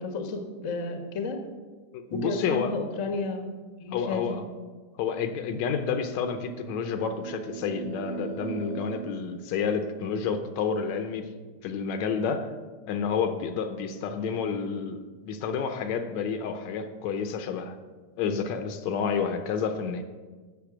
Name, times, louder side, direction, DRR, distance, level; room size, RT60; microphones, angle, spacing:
voice 1, 0.0-1.4 2.1-3.5 3.8-4.2, left 4 dB, 45° left, 5 dB, 1.0 m, -32 dB
voice 2, 2.1-2.8 3.9-4.5 5.0-11.3 11.6-12.5 12.9-17.8 18.2-20.0, left 6 dB, 75° left, 7 dB, 2.0 m, -29 dB
sound 1, 6.3-10.2, right 7 dB, 55° right, 1.4 m, -39 dB
13.5 x 6.8 x 6.0 m, 1.4 s
omnidirectional pair, 3.3 m